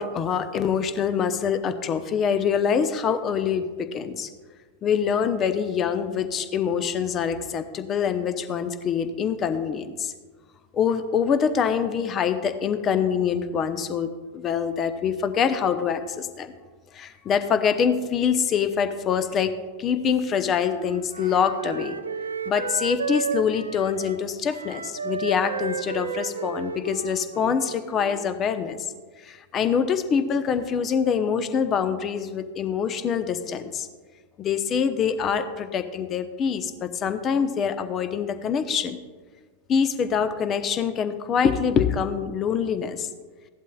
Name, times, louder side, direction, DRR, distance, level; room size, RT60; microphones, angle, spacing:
voice 1, 0.0-4.3 4.8-10.1 10.7-16.5 16.9-22.0 22.5-28.9 29.2-33.9 34.4-39.0 39.7-43.1, left 7 dB, 30° left, 10 dB, 0.9 m, -25 dB
Wind instrument woodwind instrument, 20.6-28.4, right 6 dB, 75° right, 0.6 m, -33 dB
16.5 x 11.5 x 2.4 m, 1.4 s
figure-of-eight pair, 90°, 0 cm